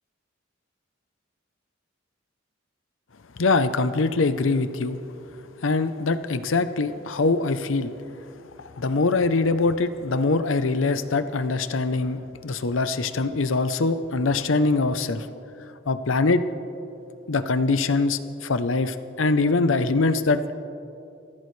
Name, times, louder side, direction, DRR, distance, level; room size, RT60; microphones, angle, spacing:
voice 1, 3.4-5.0 5.6-7.9 8.6-15.3 15.9-16.4 17.3-20.4, left 3 dB, 80° left, 11 dB, 0.7 m, -23 dB
28.5 x 15.5 x 3.3 m, 2.8 s
head